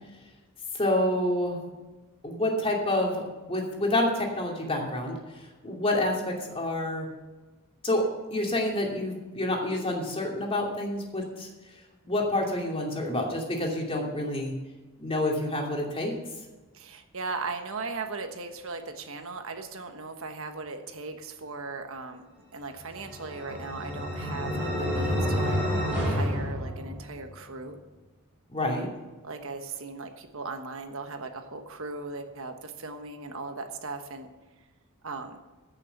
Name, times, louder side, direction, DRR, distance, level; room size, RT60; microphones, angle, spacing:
voice 1, 0.7-1.6 2.2-7.1 7.8-8.1 8.3-11.5 12.0-14.5 15.0-16.1 28.5-28.9, left 1 dB, 25° left, 0 dB, 2.7 m, -28 dB
voice 2, 16.7-25.6 26.0-27.8 29.2-34.3 35.0-35.4, right 3 dB, 60° right, 6 dB, 1.3 m, -38 dB
sound 1, 22.8-27.4, equal, 5° right, 4.7 m, -29 dB
15.0 x 6.8 x 8.0 m, 1.2 s
head